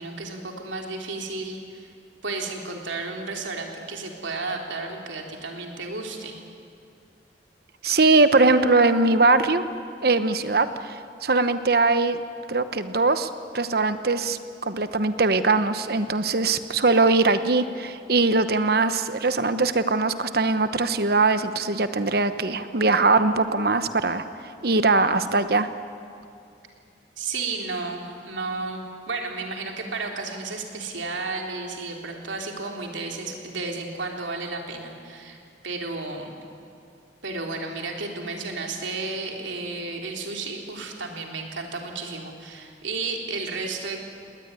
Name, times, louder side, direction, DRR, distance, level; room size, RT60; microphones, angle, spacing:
voice 1, 0.0-1.9 2.2-6.4 27.2-35.4 35.6-36.3 37.2-44.0, right 3 dB, 90° right, 1 dB, 3.3 m, -32 dB
voice 2, 7.8-9.6 10.0-12.2 12.5-13.3 13.5-24.2 24.6-25.7, right 3 dB, 55° right, 11 dB, 1.0 m, -21 dB
20.0 x 19.5 x 9.6 m, 2.4 s
head